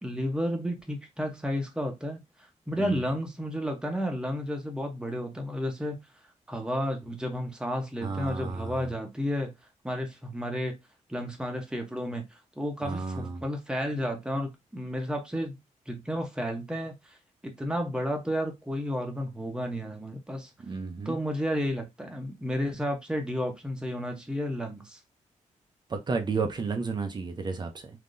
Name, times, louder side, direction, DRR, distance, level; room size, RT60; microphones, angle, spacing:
voice 1, 0.0-2.2 2.7-6.0 6.5-9.5 9.8-10.8 11.1-12.2 12.6-15.6 15.9-16.9 17.4-20.5 21.0-25.0, equal, 5° right, 0.9 m, -32 dB
voice 2, 2.7-3.0 8.0-8.9 12.8-13.4 20.6-21.2 25.9-27.9, right 4 dB, 35° right, 0.6 m, -32 dB
3.7 x 2.8 x 2.5 m
wide cardioid pair, 125°, 13 cm